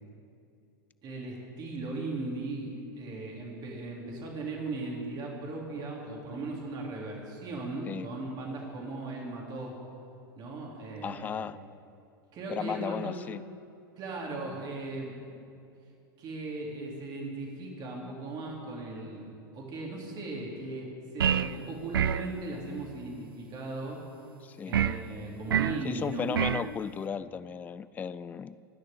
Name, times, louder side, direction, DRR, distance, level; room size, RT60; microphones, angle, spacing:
voice 1, 1.0-9.8 10.4-11.4 12.3-13.1 14.0-15.3 16.2-19.3 19.5-24.0 24.7-26.4, right 2 dB, 35° right, -2 dB, 3.6 m, -38 dB
voice 2, 11.0-11.6 12.5-13.4 24.4-24.8 25.8-28.6, left 7 dB, 15° left, 16 dB, 0.3 m, -35 dB
sound 1, 21.2-21.6 21.9-22.3 24.7-25.0 25.5-25.8 26.3-26.7, right 9 dB, 75° right, 0.5 m, -26 dB
19.0 x 6.5 x 9.9 m, 2.6 s
hypercardioid pair, 100°, 12 cm